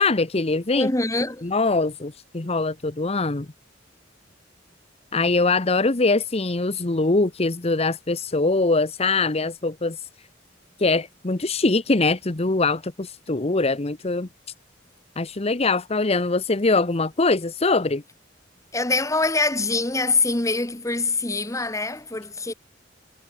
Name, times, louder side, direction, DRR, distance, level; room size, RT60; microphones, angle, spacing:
voice 1, 0.0-0.9 1.4-3.5 5.1-10.0 10.8-14.3 15.2-18.0, left 3 dB, 35° left, 1.0 m, -22 dB
voice 2, 0.7-1.5 18.7-22.5, left 3 dB, 15° left, 1.7 m, -24 dB
head